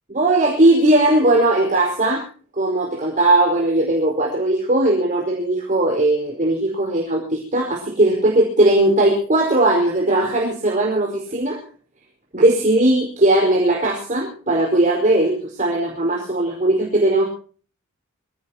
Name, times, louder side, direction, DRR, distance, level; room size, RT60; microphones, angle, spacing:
voice 1, 0.1-2.2 2.6-11.6 12.3-17.2, right 1 dB, 40° right, -1 dB, 5.1 m, -18 dB
25.5 x 17.5 x 2.9 m, 0.42 s
head